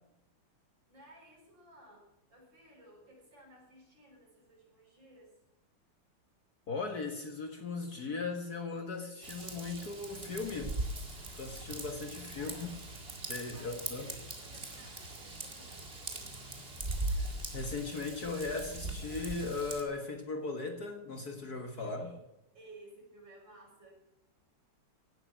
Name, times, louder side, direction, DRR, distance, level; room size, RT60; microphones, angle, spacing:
voice 1, 0.9-5.4 12.3-12.8 13.5-16.4 21.8-22.2 22.5-23.9, right 1 dB, 55° right, -2 dB, 6.9 m, -57 dB
voice 2, 6.7-10.7 11.3-12.5 13.3-14.1 17.1-22.1, left 3 dB, 45° left, 6 dB, 1.9 m, -38 dB
Raindrop / Vehicle horn car horn honking / Trickle dribble, 9.2-19.8, right 2 dB, 25° right, 2.3 m, -40 dB
17.0 x 12.0 x 6.1 m, 0.88 s
omnidirectional pair, 2.4 m